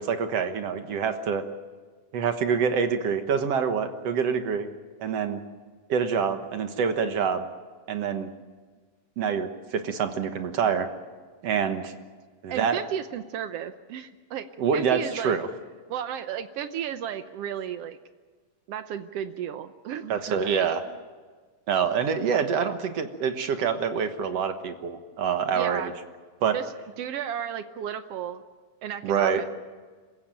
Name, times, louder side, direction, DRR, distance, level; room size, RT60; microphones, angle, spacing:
voice 1, 0.0-1.4 2.1-4.7 5.0-5.4 5.9-7.5 7.9-8.3 9.2-10.9 11.4-11.9 12.4-12.8 14.6-15.5 20.1-20.8 21.7-25.9 26.4-26.6 29.0-29.4, right 6 dB, 60° right, 7 dB, 2.0 m, -26 dB
voice 2, 12.5-14.5 14.7-15.3 15.9-18.0 18.7-20.4 25.5-25.9 26.5-26.6 27.0-28.4 28.8-29.4, right 9 dB, 80° right, 10 dB, 1.3 m, -33 dB
27.5 x 15.5 x 8.9 m, 1.4 s
omnidirectional pair, 3.9 m